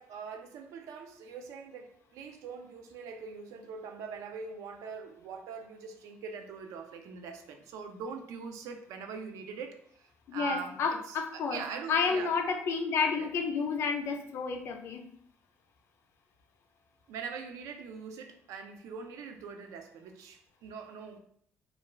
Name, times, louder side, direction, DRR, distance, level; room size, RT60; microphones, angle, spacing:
voice 1, 0.0-10.8 11.1-12.3 13.1-13.3 17.1-21.2, right 5 dB, 90° right, 6 dB, 0.4 m, -43 dB
voice 2, 10.3-11.6 11.9-15.0, left 5 dB, 55° left, 5 dB, 0.4 m, -30 dB
2.4 x 2.2 x 3.1 m, 0.64 s
cardioid pair, 145°, 5 cm